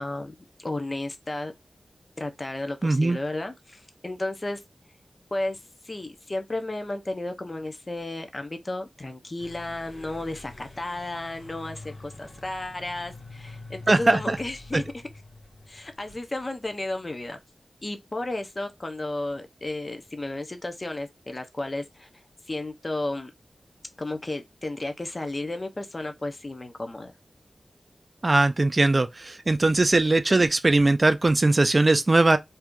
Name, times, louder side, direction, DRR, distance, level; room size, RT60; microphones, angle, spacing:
voice 1, 0.0-1.5 2.2-4.6 5.3-15.0 15.7-17.4 17.8-22.1 22.5-23.3 24.0-27.1, left 2 dB, 40° left, 0.7 m, -33 dB
voice 2, 2.8-3.2 13.9-14.4 14.7-14.8 28.2-32.4, right 2 dB, 40° right, 0.5 m, -20 dB
sound 1, 9.4-16.9, left 2 dB, 85° left, 1.4 m, -45 dB
2.8 x 2.4 x 3.6 m
wide cardioid pair, 65°, 0 cm